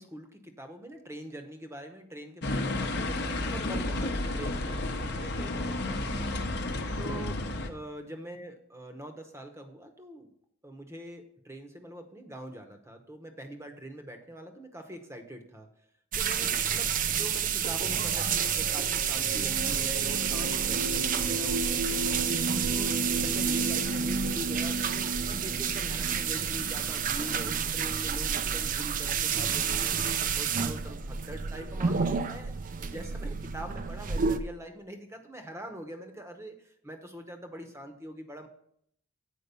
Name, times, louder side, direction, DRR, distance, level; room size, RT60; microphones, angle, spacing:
voice 1, 0.0-6.7 7.0-7.4 7.7-10.3 10.6-15.7 16.2-22.2 22.7-30.0 30.3-32.5 32.9-38.5, right 1 dB, 10° right, 6 dB, 0.9 m, -44 dB
sound 1, 2.4-7.7, left 2 dB, 50° left, 0.8 m, -31 dB
sound 2, 16.1-34.4, right 7 dB, 35° right, 0.4 m, -30 dB
sound 3, 17.9-28.7 29.6-29.7, right 2 dB, 65° right, 1.0 m, -35 dB
8.3 x 5.0 x 6.7 m, 0.69 s
head